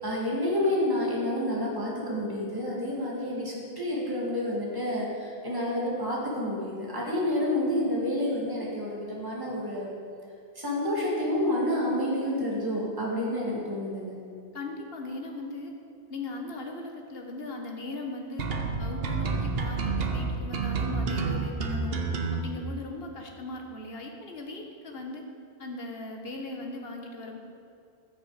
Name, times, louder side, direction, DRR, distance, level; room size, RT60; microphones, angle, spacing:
voice 1, 0.0-10.0 10.6-14.2, left 1 dB, 20° right, -5 dB, 2.1 m, -29 dB
voice 2, 14.5-15.7 16.1-18.5 18.8-22.0 22.3-25.2 25.6-27.4, left 2 dB, 60° left, 2 dB, 1.4 m, -38 dB
sound 1, 18.4-22.4, right 4 dB, 60° right, 1.1 m, -29 dB
15.0 x 6.4 x 4.9 m, 2.4 s
omnidirectional pair, 1.2 m